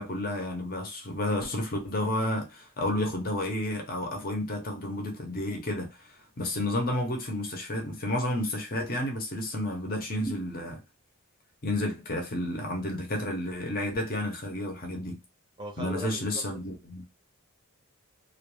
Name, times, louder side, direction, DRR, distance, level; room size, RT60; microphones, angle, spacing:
voice 1, 0.0-6.1 6.4-10.8 11.6-15.2 15.8-17.0, left 1 dB, 40° left, 0.7 m, -31 dB
voice 2, 15.6-16.6, equal, 20° right, 0.6 m, -39 dB
2.2 x 2.2 x 3.1 m
head